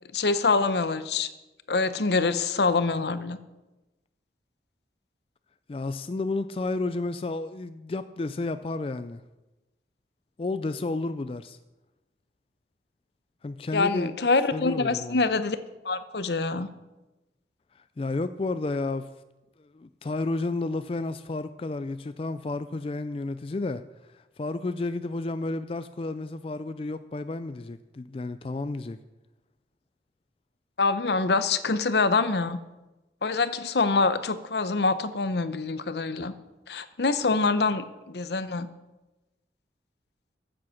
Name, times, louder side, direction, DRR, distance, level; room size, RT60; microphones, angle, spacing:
voice 1, 0.1-1.3 1.7-3.4 13.7-15.6 15.8-16.7 30.8-32.6 33.2-36.3 36.7-38.7, left 3 dB, 70° left, 13 dB, 0.8 m, -25 dB
voice 2, 5.7-9.2 10.4-11.6 13.4-14.1 14.5-15.2 17.7-19.1 19.6-29.0, left 2 dB, 30° left, 11 dB, 0.3 m, -31 dB
14.5 x 7.6 x 5.8 m, 1.1 s
head